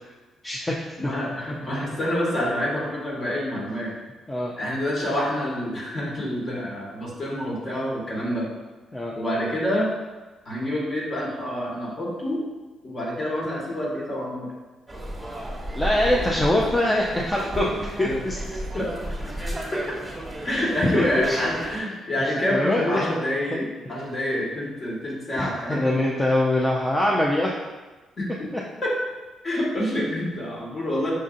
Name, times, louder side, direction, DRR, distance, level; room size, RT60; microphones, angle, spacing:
voice 1, 0.4-0.7 4.3-4.5 8.9-9.1 15.7-18.4 20.5-20.9 21.2-21.4 22.5-23.0 23.5-23.7 25.4-27.6, left 1 dB, 15° left, -3 dB, 0.5 m, -23 dB
voice 2, 1.0-3.9 4.6-8.5 9.1-9.9 10.4-12.4 12.8-14.5 18.0-18.2 18.8-18.9 19.2-19.8 20.4-26.0 28.2-28.5 28.8-28.9 29.4-31.1, left 1 dB, 40° left, -4 dB, 1.4 m, -27 dB
sound 1, 14.9-21.8, right 1 dB, 15° right, 1.2 m, -33 dB
6.2 x 2.6 x 2.5 m, 1.2 s
cardioid pair, 90°, 0 cm